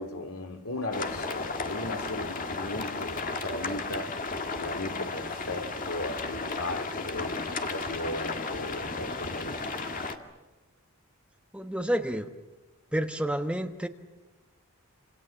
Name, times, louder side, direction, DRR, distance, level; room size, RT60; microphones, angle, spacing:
voice 1, 0.0-4.3 4.5-10.0, left 2 dB, 80° left, 3.0 m, -37 dB
sound 1, 0.9-10.2, left 3 dB, 40° left, 2.0 m, -34 dB
voice 2, 11.5-12.3 12.9-13.9, equal, 5° right, 1.2 m, -29 dB
28.0 x 27.0 x 7.3 m
head